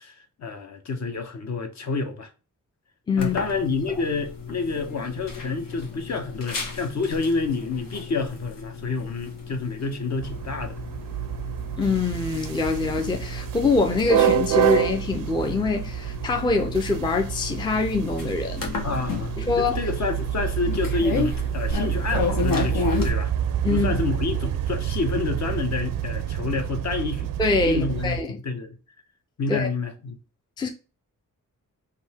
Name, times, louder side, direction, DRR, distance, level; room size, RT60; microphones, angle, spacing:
voice 1, 0.0-2.3 3.2-10.8 18.8-23.3 23.7-27.3 27.6-28.8 29.4-30.1, left 4 dB, 55° left, 0.9 m, -28 dB
sound 1, 3.2-23.1, left 4 dB, 80° left, 1.3 m, -33 dB
sound 2, 10.2-28.2, right 10 dB, 85° right, 0.5 m, -28 dB
voice 2, 11.8-18.8 19.4-19.8 23.6-23.9 27.4-28.4 29.5-29.7 30.6-30.7, left 4 dB, 15° left, 0.4 m, -24 dB
3.8 x 2.8 x 4.2 m
wide cardioid pair, 155°, 33 cm